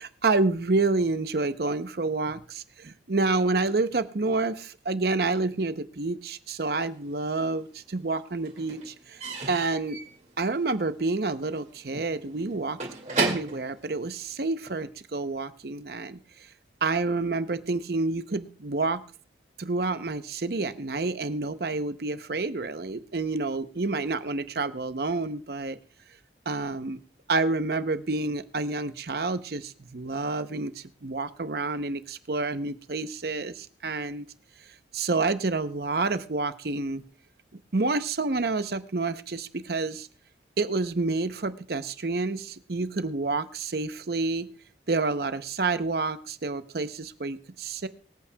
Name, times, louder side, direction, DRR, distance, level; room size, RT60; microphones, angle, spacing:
voice 1, 0.0-10.0 10.4-12.8 13.2-16.5 16.8-19.0 19.6-25.8 26.5-27.0 27.3-34.3 34.9-37.0 37.7-40.1 40.6-44.5 44.9-47.9, right 3 dB, 55° right, 11 dB, 0.7 m, -28 dB
Slam / Squeak / Wood, 6.9-7.8 8.0-14.8, right 3 dB, 40° right, 2.3 m, -35 dB
24.0 x 8.5 x 2.3 m, 0.40 s
head